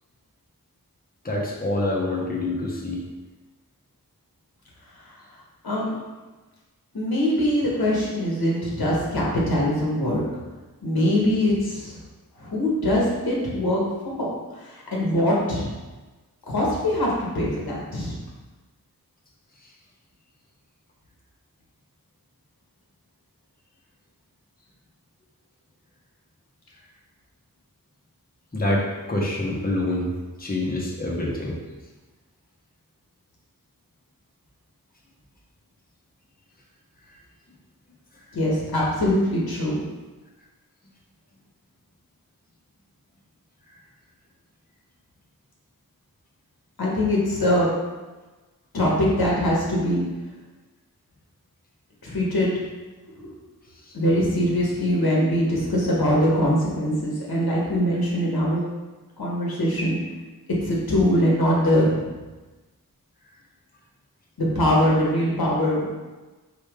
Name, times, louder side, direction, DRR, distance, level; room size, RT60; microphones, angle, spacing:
voice 1, 1.2-3.0 28.5-30.1 30.4-31.5, left 1 dB, 25° left, -3 dB, 0.9 m, -26 dB
voice 2, 5.6-6.0 6.9-10.2 10.8-12.0 12.4-13.8 14.2-14.3 14.6-15.7 16.5-18.2 38.3-39.8 46.8-47.7 48.7-50.0 52.0-52.5 53.9-58.6 59.2-60.0 60.6-62.1 64.4-65.9, equal, 85° left, -4 dB, 1.2 m, -22 dB
4.4 x 3.1 x 3.5 m, 1.2 s
wide cardioid pair, 45°, 36 cm